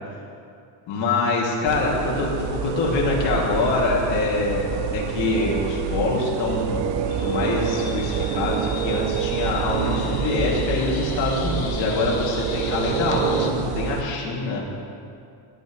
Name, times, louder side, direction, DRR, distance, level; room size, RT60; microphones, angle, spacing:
voice 1, 0.9-6.8 7.2-14.6, left 3 dB, 65° left, -4 dB, 2.8 m, -24 dB
sound 1, 1.7-14.0, right 7 dB, 60° right, 0.8 m, -27 dB
sound 2, 6.0-9.7, right 6 dB, 85° right, 1.3 m, -41 dB
sound 3, 7.1-13.5, left 7 dB, 50° left, 1.0 m, -38 dB
16.0 x 10.5 x 3.3 m, 2.5 s
cardioid pair, 150°, 48 cm